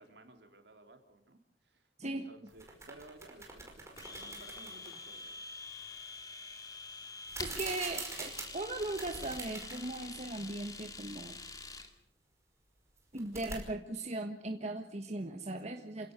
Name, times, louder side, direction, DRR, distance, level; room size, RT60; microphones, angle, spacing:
voice 1, 0.0-5.6, right 2 dB, 65° right, 5 dB, 3.5 m, -57 dB
sound 1, 2.5-5.0 7.2-10.0 10.4-10.5 13.0-13.6, right 3 dB, 15° right, 5.2 m, -44 dB
Domestic sounds home sounds, 4.0-11.9, left 3 dB, 20° left, 2.4 m, -46 dB
voice 2, 7.4-11.4 13.1-16.1, right 2 dB, 40° right, 4 dB, 1.5 m, -38 dB
28.0 x 17.5 x 6.8 m, 0.65 s
head